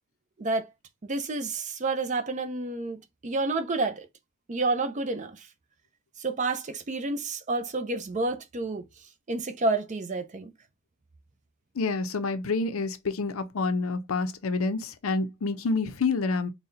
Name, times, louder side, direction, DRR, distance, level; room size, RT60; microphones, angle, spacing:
voice 1, 0.4-0.7 1.0-4.1 4.5-5.5 6.2-8.9 9.3-10.5, right 3 dB, 35° right, 0.5 m, -29 dB
voice 2, 11.7-16.5, left 3 dB, 70° left, 0.6 m, -28 dB
4.1 x 2.2 x 3.8 m
head